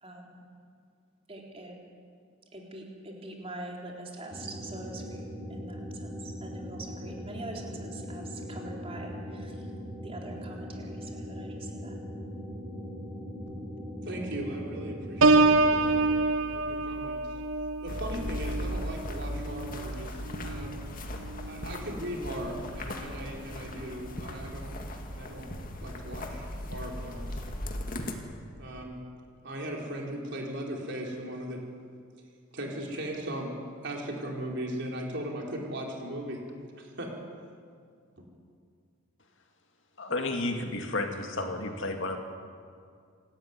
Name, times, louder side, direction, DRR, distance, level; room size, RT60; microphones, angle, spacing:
voice 1, 0.0-0.4 1.3-1.8 2.5-9.7 10.0-12.0, right 2 dB, 25° right, -1 dB, 3.8 m, -43 dB
sound 1, 4.3-16.1, equal, 10° right, 3.7 m, -40 dB
voice 2, 14.0-16.0 16.4-17.2 17.8-20.7 21.5-24.8 25.1-25.5 25.8-27.4 28.6-29.0 29.4-31.6 32.5-33.5 33.8-36.4 36.8-37.1, right 1 dB, 55° right, 0 dB, 4.4 m, -38 dB
Piano, 15.2-20.8 21.3-21.6, right 3 dB, 80° right, 1.1 m, -26 dB
sound 2, 17.9-28.2, left 1 dB, 40° left, 2.2 m, -38 dB
voice 3, 40.0-42.2, left 2 dB, 60° left, 4 dB, 2.3 m, -32 dB
27.5 x 13.0 x 9.7 m, 2.2 s
head